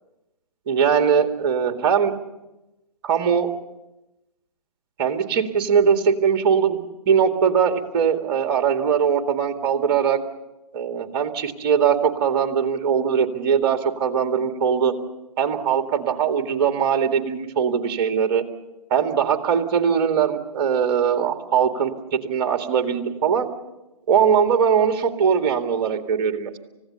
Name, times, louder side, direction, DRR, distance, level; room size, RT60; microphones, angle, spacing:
voice 1, 0.7-2.1 3.0-3.5 5.0-10.2 10.7-14.9 15.4-18.4 18.9-23.5 24.1-26.6, right 7 dB, 35° right, 7 dB, 2.0 m, -21 dB
29.5 x 16.0 x 7.0 m, 0.99 s
figure-of-eight pair, 135°, 21 cm